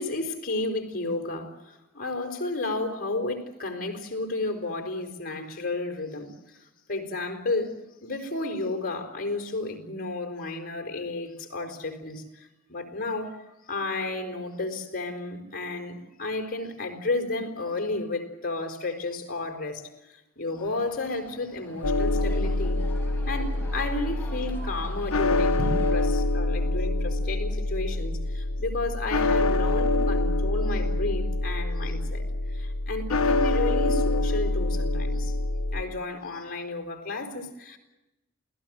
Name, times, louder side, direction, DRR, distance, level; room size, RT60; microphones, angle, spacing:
voice 1, 0.0-6.6 6.9-7.7 8.0-22.8 23.3-35.3 35.7-37.8, left 2 dB, 40° left, 4 dB, 4.8 m, -32 dB
sound 1, 20.5-26.1, left 1 dB, 10° left, 5.8 m, -46 dB
sound 2, 21.8-35.8, left 2 dB, 80° left, 1.3 m, -26 dB
28.5 x 18.0 x 7.9 m, 0.96 s
head